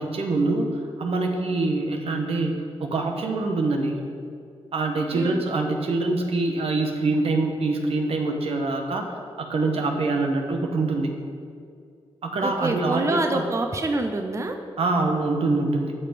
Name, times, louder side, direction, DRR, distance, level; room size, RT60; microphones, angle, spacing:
voice 1, 0.0-4.0 4.7-11.1 12.2-13.4 14.8-15.9, right 3 dB, 75° right, 3 dB, 1.3 m, -25 dB
voice 2, 5.1-5.4 12.4-14.5, right 2 dB, 30° right, 5 dB, 0.8 m, -26 dB
12.5 x 5.8 x 5.2 m, 2.3 s
cardioid pair, 80°, 10 cm